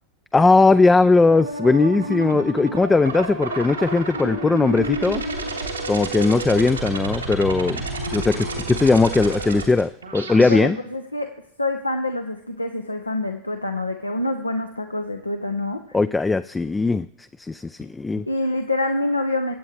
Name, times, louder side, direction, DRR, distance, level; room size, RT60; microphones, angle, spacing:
voice 1, 0.3-5.2 5.9-7.8 8.1-10.8 15.9-17.1 17.4-18.2, left 3 dB, 10° left, 12 dB, 0.3 m, -19 dB
sound 1, 1.2-10.6, right 2 dB, 80° right, 2.6 m, -29 dB
voice 2, 10.3-11.3 11.6-16.0 18.3-19.5, left 2 dB, 85° left, 6 dB, 0.7 m, -26 dB
22.0 x 8.5 x 3.3 m, 0.78 s
figure-of-eight pair, 85°, 0 cm